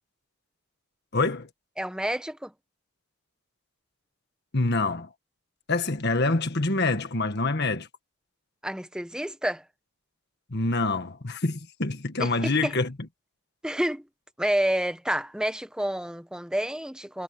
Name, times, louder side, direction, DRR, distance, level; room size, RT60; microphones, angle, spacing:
voice 1, 1.1-1.5 4.5-5.1 5.7-7.9 10.5-13.1, left 3 dB, 50° left, 1.7 m, -26 dB
voice 2, 1.8-2.5 8.6-9.6 12.2-12.7 13.6-14.0 14.4-17.2, right 1 dB, 5° right, 1.2 m, -29 dB
head